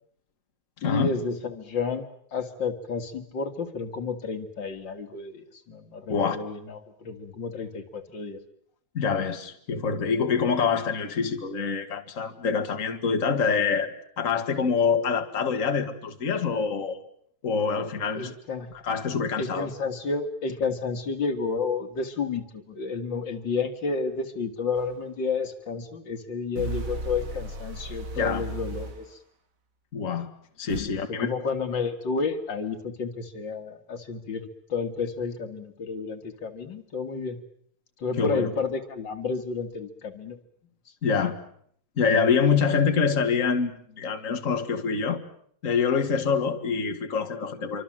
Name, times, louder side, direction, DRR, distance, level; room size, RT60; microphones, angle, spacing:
voice 1, 0.8-2.1 2.3-8.4 18.2-18.7 19.4-29.2 30.7-37.4 38.0-40.4, left 4 dB, 65° left, 8 dB, 2.5 m, -31 dB
voice 2, 8.9-13.9 14.2-17.0 17.4-18.3 18.8-19.7 28.1-28.5 29.9-30.3 30.6-31.3 38.2-38.5 41.0-41.4 42.0-45.2 45.6-47.8, left 5 dB, 40° left, 6 dB, 2.2 m, -25 dB
sound 1, 24.8-24.9 26.6-29.1 30.7-30.8, right 2 dB, 85° right, 2.9 m, -34 dB
27.0 x 25.0 x 7.5 m, 0.65 s
omnidirectional pair, 2.2 m